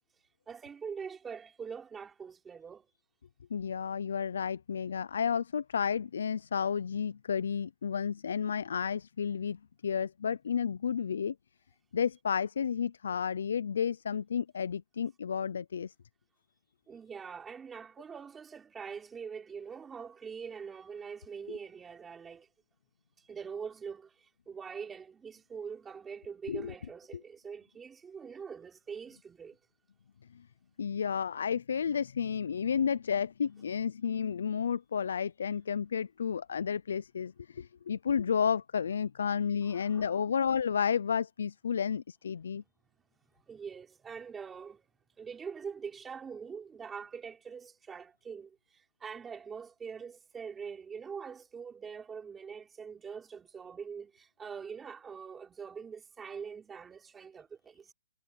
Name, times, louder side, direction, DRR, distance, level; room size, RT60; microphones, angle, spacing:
voice 1, 0.5-2.9 16.9-22.5 23.3-29.6 39.6-40.1 43.5-44.9 45.2-57.9, right 6 dB, 10° right, 4.3 m, -44 dB
voice 2, 3.5-11.3 11.9-15.9 21.5-21.6 26.5-26.7 30.8-42.6, left 7 dB, 65° left, 0.4 m, -32 dB
hypercardioid pair, 170°, 0 cm